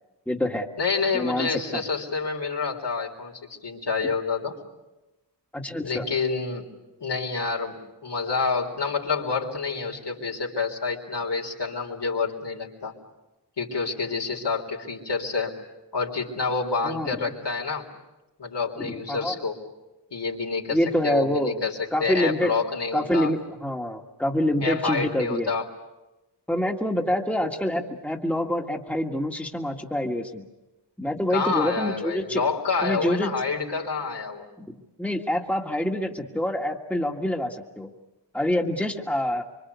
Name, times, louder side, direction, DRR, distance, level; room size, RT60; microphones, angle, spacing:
voice 1, 0.3-0.7 1.1-1.8 4.0-4.1 5.5-6.1 16.8-17.2 18.8-19.4 20.7-21.5 21.9-22.5 22.9-25.5 26.5-30.5 31.0-32.5 32.8-33.3 34.6-37.9 38.3-39.5, left 1 dB, 5° left, 2 dB, 1.9 m, -26 dB
voice 2, 0.8-4.6 5.8-6.7 7.0-12.9 13.6-15.6 15.9-17.9 18.4-19.6 20.1-20.8 21.0-23.3 24.6-25.7 31.3-34.5, left 4 dB, 75° left, 0 dB, 3.9 m, -28 dB
25.0 x 24.5 x 8.3 m, 1.0 s
wide cardioid pair, 80°, 42 cm